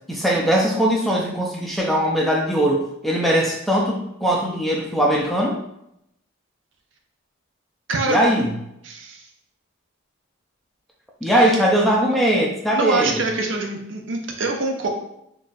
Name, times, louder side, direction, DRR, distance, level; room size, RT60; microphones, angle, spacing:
voice 1, 0.1-5.6 8.1-8.5 11.2-13.2, right 1 dB, ahead, -2 dB, 0.3 m, -20 dB
voice 2, 7.9-8.2 8.8-9.3 12.7-14.9, right 3 dB, 65° right, 2 dB, 0.5 m, -24 dB
3.8 x 2.3 x 2.5 m, 0.78 s
head